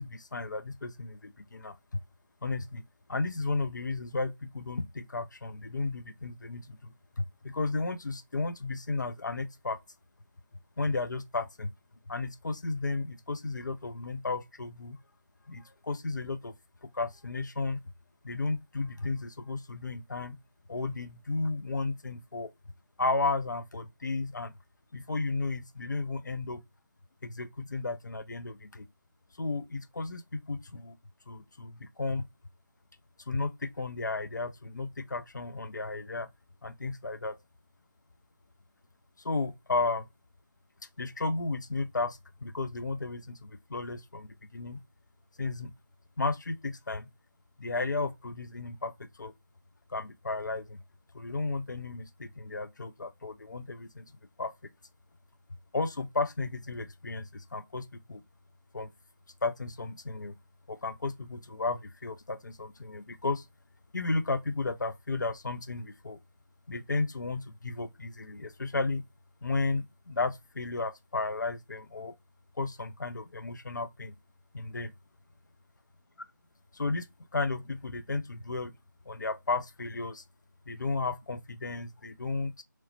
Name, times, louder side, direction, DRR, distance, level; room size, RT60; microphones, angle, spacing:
voice 1, 0.0-1.8 2.4-2.8 3.1-9.8 10.8-11.7 12.1-15.0 15.5-16.5 16.8-17.8 18.2-20.4 20.7-22.5 23.0-24.5 24.9-26.6 27.2-28.9 29.4-31.0 31.3-32.2 33.3-36.3 36.6-37.4 39.2-40.1 41.0-44.8 45.4-45.7 46.2-47.1 47.6-49.3 49.9-50.8 51.1-54.1 54.4-54.5 55.7-58.2 58.7-58.9 59.4-60.3 60.7-63.5 63.9-66.2 66.7-69.0 69.4-72.1 72.6-74.1 74.5-74.9 76.7-77.1 77.3-78.7 79.1-80.2 80.7-82.6, left 3 dB, 65° left, 0.4 m, -33 dB
3.0 x 2.0 x 2.7 m
figure-of-eight pair, 155°, 11 cm